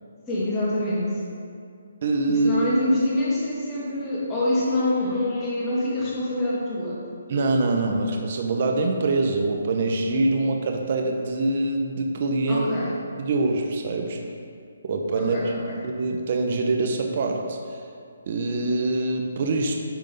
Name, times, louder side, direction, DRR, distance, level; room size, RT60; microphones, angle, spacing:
voice 1, 0.3-1.2 2.3-7.0 12.5-12.9 15.2-15.8, left 1 dB, 15° left, -8 dB, 2.1 m, -25 dB
voice 2, 2.0-2.5 7.3-12.7 13.2-14.2 14.8-15.5 15.8-17.8 18.3-19.7, right 2 dB, 45° right, 2 dB, 0.8 m, -24 dB
10.5 x 3.7 x 5.4 m, 2.3 s
hypercardioid pair, 160°, 0 cm